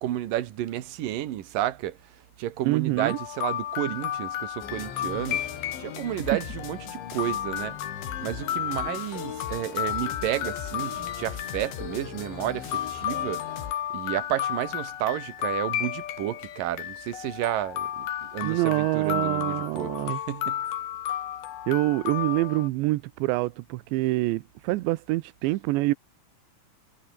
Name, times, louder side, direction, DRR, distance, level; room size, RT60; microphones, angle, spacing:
voice 1, 0.0-2.0 2.4-5.4 5.8-7.8 8.2-13.5 13.9-20.6, right 13 dB, 60° right, 2.6 m, -31 dB
voice 2, 2.6-3.2 18.4-20.2 21.7-25.9, right 19 dB, 90° right, 3.0 m, -26 dB
sound 1, 3.0-22.7, left 11 dB, 65° left, 3.4 m, -33 dB
sound 2, 4.6-13.7, left 8 dB, 85° left, 6.0 m, -39 dB
omnidirectional pair, 5.2 m